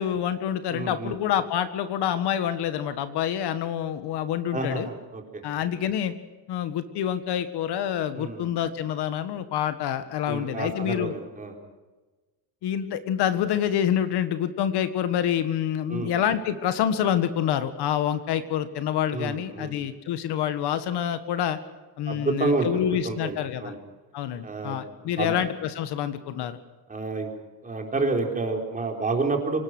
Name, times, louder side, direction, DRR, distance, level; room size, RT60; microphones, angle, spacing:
voice 1, 0.0-4.9 5.4-6.1 6.5-11.1 12.6-21.6 22.0-23.7 24.1-26.6, left 9 dB, 65° left, 10 dB, 1.7 m, -27 dB
voice 2, 0.7-1.1 4.5-5.4 8.1-8.5 10.3-11.5 15.9-16.1 19.1-19.8 22.1-23.8 24.4-24.8 25.0-25.3 26.9-27.3 27.6-29.6, right 3 dB, 20° right, 2 dB, 4.0 m, -29 dB
24.5 x 19.0 x 6.2 m, 1.2 s
cardioid pair, 155°, 42 cm